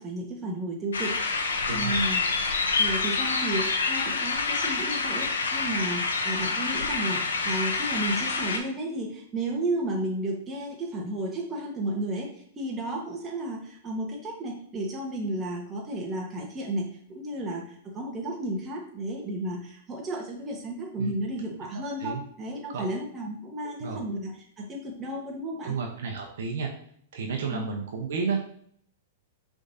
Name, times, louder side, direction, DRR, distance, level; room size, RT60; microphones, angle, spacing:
voice 1, 0.0-2.2 2.8-25.8 27.5-27.7, right 1 dB, 25° right, -1 dB, 1.3 m, -33 dB
sound 1, 0.9-8.6, left 4 dB, 90° left, 0.7 m, -27 dB
voice 2, 1.7-2.0 21.0-21.1 21.7-22.2 22.7-22.9 23.8-24.0 25.6-26.7 27.1-28.4, right 5 dB, 70° right, 1 dB, 0.9 m, -32 dB
4.8 x 3.6 x 2.7 m, 0.62 s
hypercardioid pair, 120°, 0 cm